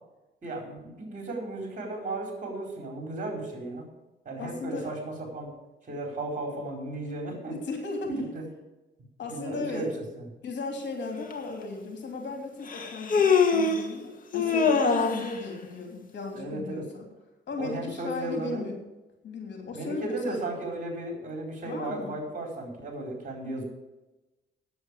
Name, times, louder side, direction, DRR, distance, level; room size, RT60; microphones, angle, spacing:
voice 1, 0.4-3.9 4.2-5.5 5.8-7.5 8.1-8.4 9.3-10.2 16.3-16.9 17.6-18.7 19.7-23.6, right 2 dB, 40° right, 1 dB, 4.6 m, -35 dB
voice 2, 4.4-4.9 7.5-8.1 9.2-9.8 10.4-17.1 17.5-18.7 19.2-20.4 21.6-22.2, left 3 dB, 65° left, 3 dB, 2.9 m, -36 dB
Human voice, 11.3-11.4 12.7-13.9 14.3-15.3, left 5 dB, 45° left, 1.9 m, -23 dB
9.5 x 7.9 x 8.5 m, 1.1 s
cardioid pair, 90°, 20 cm